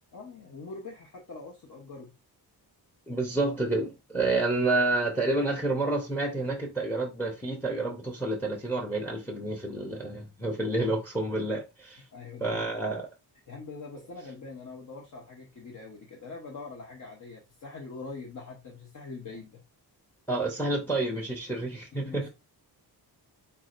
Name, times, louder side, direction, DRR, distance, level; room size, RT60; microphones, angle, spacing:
voice 1, 0.1-2.1 12.1-12.9 13.5-19.6 22.0-22.3, left 4 dB, 50° left, 1.0 m, -43 dB
voice 2, 3.1-12.0 12.4-13.1 20.3-22.2, right 2 dB, 5° left, 0.8 m, -29 dB
4.7 x 4.2 x 2.5 m
wide cardioid pair, 170°, 41 cm